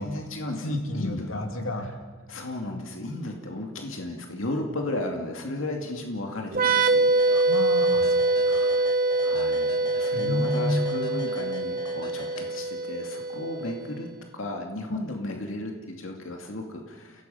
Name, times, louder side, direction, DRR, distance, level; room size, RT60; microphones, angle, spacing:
voice 1, 0.0-1.3 1.8-1.9 2.3-7.1 9.2-14.1 14.3-17.2, left 1 dB, 75° left, 2 dB, 2.5 m, -34 dB
voice 2, 0.6-1.9 7.3-8.2 8.5-8.8 10.1-10.9, left 1 dB, 90° left, 4 dB, 2.7 m, -30 dB
sound 1, 6.5-14.0, right 2 dB, 45° right, 1.1 m, -24 dB
sound 2, 7.2-13.0, left 3 dB, 20° left, 1.6 m, -44 dB
29.5 x 17.5 x 5.8 m, 1.3 s
head